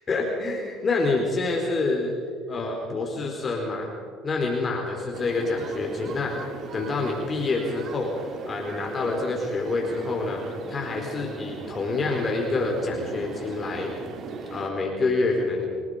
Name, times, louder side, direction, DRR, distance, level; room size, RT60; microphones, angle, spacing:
voice 1, 0.1-2.2 2.5-3.9 4.2-6.3 6.7-10.4 10.7-13.9 14.5-15.7, left 3 dB, 35° left, 0 dB, 4.4 m, -27 dB
sound 1, 5.1-14.7, right 5 dB, 55° right, 2.6 m, -38 dB
29.5 x 18.5 x 5.2 m, 2.1 s
supercardioid pair, 85°, 0 cm